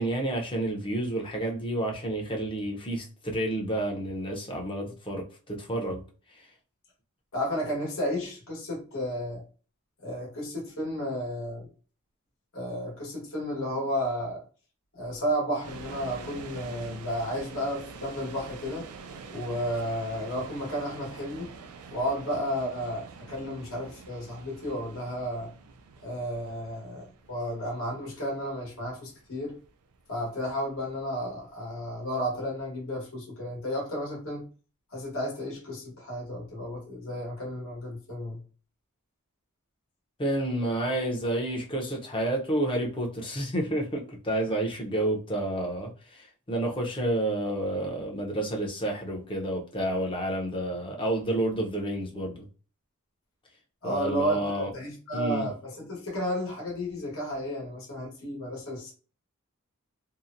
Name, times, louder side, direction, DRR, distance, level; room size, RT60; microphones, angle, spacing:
voice 1, 0.0-6.0 40.2-52.5 53.8-54.7 55.1-55.5, right 1 dB, 25° left, 0.6 m, -30 dB
voice 2, 7.3-9.4 10.0-11.7 12.5-14.4 14.9-18.9 19.3-21.5 21.9-25.5 26.0-29.6 30.1-34.5 34.9-38.4 53.8-58.9, equal, 65° left, 1.1 m, -32 dB
sound 1, 15.6-32.6, right 4 dB, 90° right, 0.4 m, -46 dB
2.7 x 2.1 x 2.5 m
head